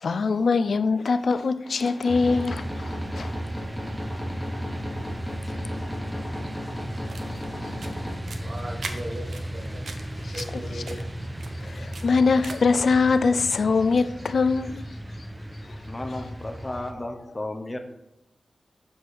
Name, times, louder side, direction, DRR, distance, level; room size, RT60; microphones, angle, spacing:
voice 1, 0.0-3.3 10.2-11.0 11.6-14.9, left 4 dB, 75° left, 0.4 m, -23 dB
sound 1, 1.6-8.2, left 1 dB, 5° left, 2.2 m, -37 dB
sound 2, 2.1-16.9, right 1 dB, 15° right, 0.7 m, -35 dB
sound 3, 7.1-12.8, right 4 dB, 85° right, 0.9 m, -42 dB
voice 2, 8.4-9.8 10.3-11.1 13.8-13.9, right 1 dB, 65° right, 2.0 m, -38 dB
voice 3, 15.8-17.8, left 1 dB, 25° left, 0.9 m, -33 dB
7.2 x 4.3 x 6.4 m
wide cardioid pair, 100°, 0 cm